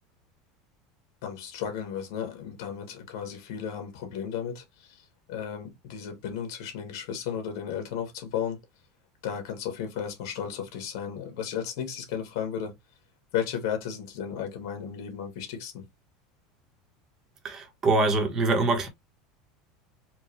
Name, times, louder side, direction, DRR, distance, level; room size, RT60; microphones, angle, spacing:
voice 1, 1.2-4.6 5.3-8.6 9.2-12.7 13.3-15.9, left 8 dB, 70° left, 1.8 m, -34 dB
voice 2, 17.4-18.9, right 3 dB, 25° right, 1.3 m, -24 dB
4.5 x 2.6 x 3.2 m
supercardioid pair, 150°, 2 cm